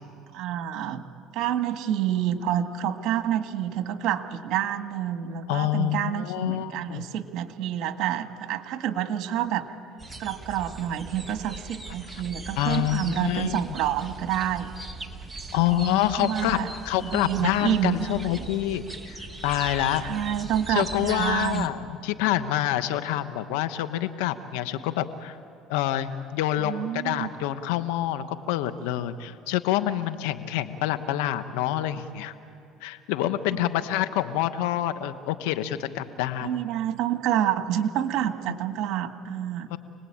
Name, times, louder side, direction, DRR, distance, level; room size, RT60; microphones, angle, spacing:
voice 1, 0.3-1.0 1.3-9.7 10.2-14.7 15.5-16.7 17.0-18.4 20.0-21.7 26.6-27.3 33.5-33.7 36.4-39.7, right 10 dB, 65° right, 8 dB, 1.6 m, -28 dB
voice 2, 5.5-7.1 12.6-13.6 15.5-20.0 20.7-25.4 25.7-32.3 32.8-36.5 39.7-39.8, left 13 dB, 90° left, 11 dB, 1.2 m, -27 dB
sound 1, 10.0-21.7, right 2 dB, 10° right, 1.7 m, -40 dB
28.5 x 19.5 x 8.8 m, 2.4 s
supercardioid pair, 95°, 0 cm